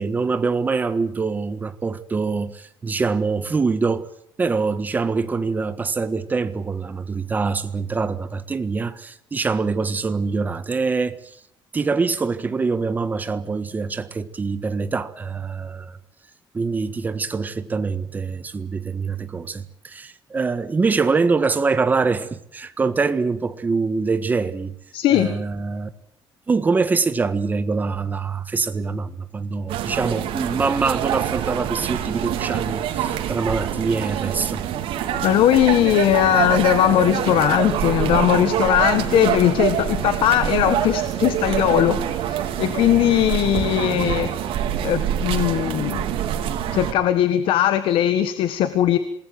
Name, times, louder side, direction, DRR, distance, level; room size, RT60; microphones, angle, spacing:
voice 1, 0.0-4.1 4.4-11.4 11.7-16.0 16.5-24.7 25.1-25.9 26.5-34.7, right 4 dB, 20° right, 1.5 m, -24 dB
voice 2, 24.9-25.4 35.2-46.1 46.7-49.0, left 12 dB, 75° left, 1.7 m, -19 dB
sound 1, 29.7-46.9, right 10 dB, 85° right, 3.6 m, -25 dB
27.0 x 20.5 x 7.8 m
cardioid pair, 180°, 9 cm